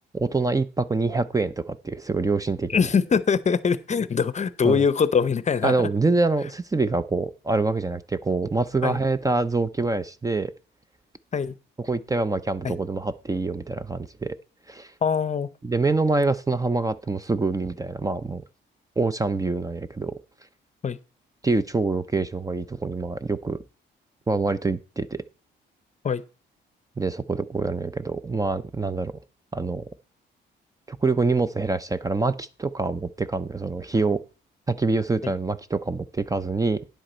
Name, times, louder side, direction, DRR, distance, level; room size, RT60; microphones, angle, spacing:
voice 1, 0.1-2.7 4.6-4.8 5.6-10.5 11.8-14.4 14.7-14.9 15.6-18.4 19.0-20.2 21.4-23.6 24.3-25.2 27.0-29.1 29.5-29.9 30.9-34.2 34.7-36.8, right 3 dB, 15° right, 0.6 m, -25 dB
voice 2, 2.7-5.9 8.8-9.0 11.3-11.5 12.6-12.8 15.0-15.5 20.8-21.0 26.0-26.2, left 6 dB, 35° left, 0.7 m, -23 dB
10.5 x 7.8 x 4.4 m
cardioid pair, 90°, 20 cm